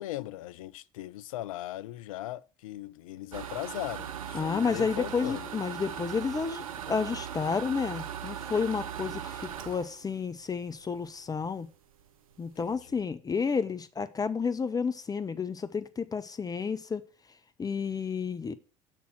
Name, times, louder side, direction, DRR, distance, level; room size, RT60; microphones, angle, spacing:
voice 1, 0.0-5.5 12.6-12.8, left 15 dB, 70° left, 0.4 m, -38 dB
sound 1, 3.3-11.1 11.5-11.6 12.0-12.1 12.3-12.7, right 9 dB, 80° right, 0.6 m, -39 dB
voice 2, 4.3-11.7 12.4-17.0 17.6-18.5, left 5 dB, 20° left, 0.6 m, -31 dB
7.0 x 4.4 x 6.1 m
figure-of-eight pair, 65°, 18 cm